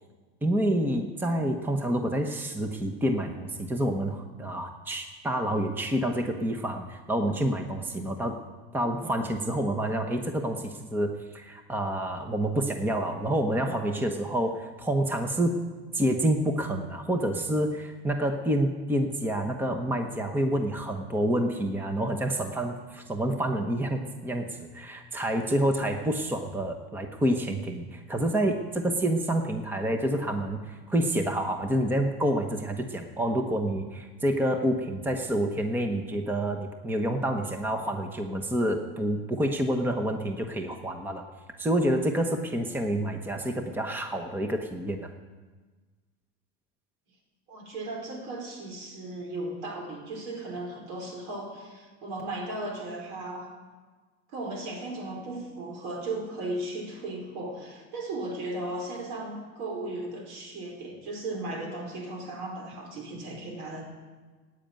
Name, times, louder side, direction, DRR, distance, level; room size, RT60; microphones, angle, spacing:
voice 1, 0.4-8.4 8.7-15.6 15.9-41.2 41.6-45.1, right 1 dB, 5° right, 4 dB, 1.0 m, -28 dB
voice 2, 47.5-53.5 54.3-63.8, right 2 dB, 65° right, 2 dB, 5.0 m, -36 dB
15.0 x 9.3 x 8.9 m, 1.4 s
supercardioid pair, 140°, 33 cm